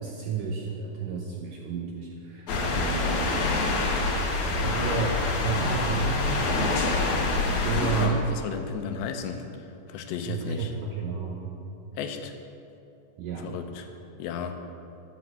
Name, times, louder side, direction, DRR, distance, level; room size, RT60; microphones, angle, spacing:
voice 1, 0.0-3.4 4.6-6.5 7.6-8.1 10.3-11.5 13.2-13.6, right 6 dB, 75° right, -1 dB, 2.1 m, -32 dB
sound 1, 2.5-8.1, left 3 dB, 60° left, 2.2 m, -26 dB
voice 2, 7.7-10.7 11.9-12.3 13.4-13.9 14.2-14.5, left 7 dB, 85° left, 6 dB, 3.1 m, -34 dB
11.5 x 8.4 x 7.7 m, 2.7 s
omnidirectional pair, 4.9 m